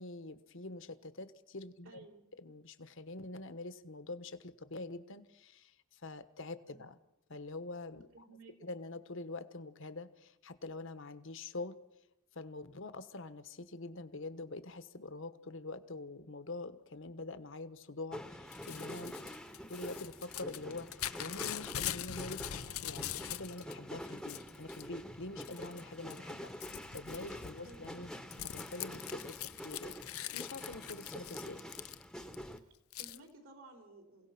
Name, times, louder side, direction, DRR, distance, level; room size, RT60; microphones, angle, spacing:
voice 1, 0.0-2.1 2.4-6.9 7.3-8.3 8.6-11.7 12.3-19.3 19.7-28.1 28.4-30.0 30.3-31.6, left 2 dB, 65° left, 11 dB, 1.3 m, -45 dB
voice 2, 1.8-2.3 6.7-6.9 8.1-8.8 27.6-27.9 32.6-34.3, right 2 dB, 65° right, 3 dB, 4.4 m, -56 dB
sound 1, 18.1-32.6, equal, 5° left, 1.0 m, -47 dB
Crumpling crinkling / Tearing, 18.5-23.7 24.1-24.9 25.4-25.8 26.1-32.3 32.9-33.2, left 12 dB, 85° left, 0.7 m, -43 dB
sound 2, 19.2-25.2, right 3 dB, 20° right, 1.3 m, -62 dB
28.0 x 17.0 x 6.0 m, 0.88 s
head